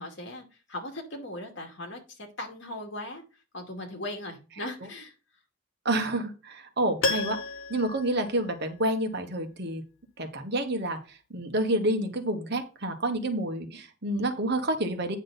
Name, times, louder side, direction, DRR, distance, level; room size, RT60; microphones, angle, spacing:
voice 1, 0.0-3.2 3.5-5.1, left 1 dB, 60° left, 3 dB, 2.4 m, -38 dB
voice 2, 5.8-7.4 7.7-9.8 10.2-15.2, right 1 dB, 50° right, 6 dB, 1.4 m, -29 dB
Piano, 7.0-9.1 9.4-9.5, left 3 dB, 80° left, 1.1 m, -32 dB
9.3 x 6.3 x 4.1 m, 0.32 s
head